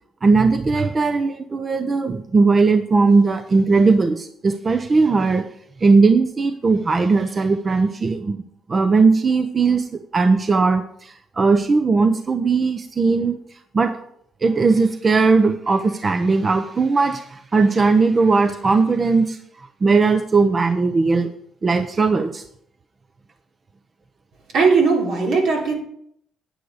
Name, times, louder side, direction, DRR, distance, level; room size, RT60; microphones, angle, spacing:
voice 1, 0.2-5.5 5.8-8.4 8.7-9.9 10.1-13.4 13.7-14.0 14.4-19.4 19.8-21.3 21.6-22.4, right 4 dB, 35° right, 9 dB, 0.7 m, -18 dB
voice 2, 24.5-25.7, right 4 dB, 80° right, 0 dB, 3.2 m, -18 dB
9.5 x 9.1 x 4.9 m, 0.68 s
cardioid pair, 90°, 0 cm